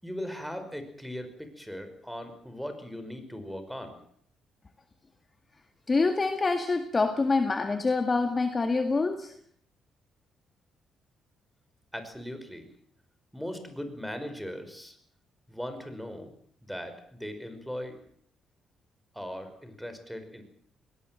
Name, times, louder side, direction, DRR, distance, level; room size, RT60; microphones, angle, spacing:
voice 1, 0.0-4.0 11.9-12.7 13.3-15.0 15.5-16.3 16.6-18.0 19.1-20.4, equal, ahead, 7 dB, 5.4 m, -39 dB
voice 2, 5.9-9.3, left 3 dB, 30° left, 7 dB, 1.9 m, -26 dB
22.0 x 18.5 x 7.8 m, 0.63 s
cardioid pair, 90°, 0 cm